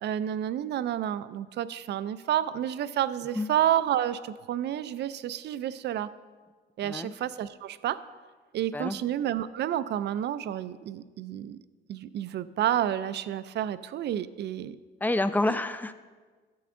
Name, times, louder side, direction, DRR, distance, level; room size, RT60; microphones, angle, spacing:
voice 1, 0.0-6.1 6.8-8.0 8.5-11.6 11.9-14.8, right 11 dB, 60° right, 15 dB, 0.4 m, -30 dB
voice 2, 15.0-16.0, left 2 dB, 10° left, 12 dB, 0.4 m, -28 dB
12.0 x 7.6 x 2.5 m, 1.4 s
cardioid pair, 90°, 20 cm